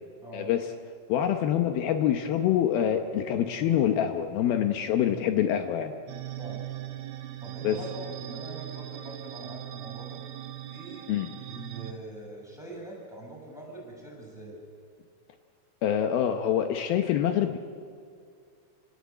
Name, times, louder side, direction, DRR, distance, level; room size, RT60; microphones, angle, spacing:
voice 1, 0.3-0.7 1.1-5.9 7.6-7.8 11.1-11.3 15.8-17.6, left 10 dB, 85° left, 6 dB, 2.1 m, -25 dB
sound 1, 6.1-11.9, right 14 dB, 75° right, 3.7 m, -39 dB
voice 2, 7.4-10.2 10.7-11.1 11.4-14.6, right 1 dB, ahead, -2 dB, 7.1 m, -43 dB
27.5 x 18.5 x 8.5 m, 2.3 s
omnidirectional pair, 5.8 m